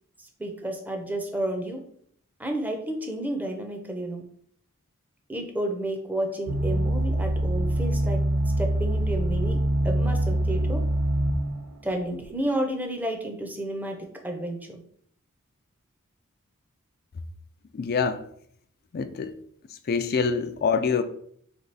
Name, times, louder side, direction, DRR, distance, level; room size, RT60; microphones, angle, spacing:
voice 1, 0.4-1.8 2.4-4.2 5.3-8.2 8.6-9.6 9.8-10.8 11.8-14.0 14.2-14.8, right 1 dB, 10° right, 0.6 m, -31 dB
sound 1, 6.5-11.6 12.2-12.3, right 1 dB, 85° right, 0.7 m, -24 dB
voice 2, 17.7-18.2 18.9-19.3 19.9-21.0, left 5 dB, 45° left, 0.4 m, -25 dB
3.6 x 3.4 x 4.0 m
head